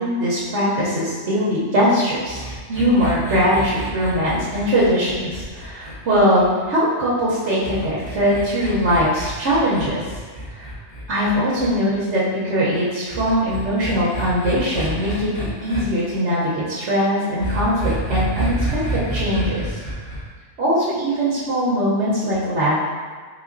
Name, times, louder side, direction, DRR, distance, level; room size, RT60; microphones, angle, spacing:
voice 1, 0.0-2.4 2.7-10.0 10.5-10.7 11.1-19.8 20.6-22.7, equal, 70° right, -8 dB, 1.1 m, -21 dB
sound 1, 2.2-6.7 7.6-11.7 13.1-15.8 17.4-20.2, right 2 dB, 30° left, 1.7 m, -29 dB
4.1 x 3.4 x 2.5 m, 1.5 s
omnidirectional pair, 1.2 m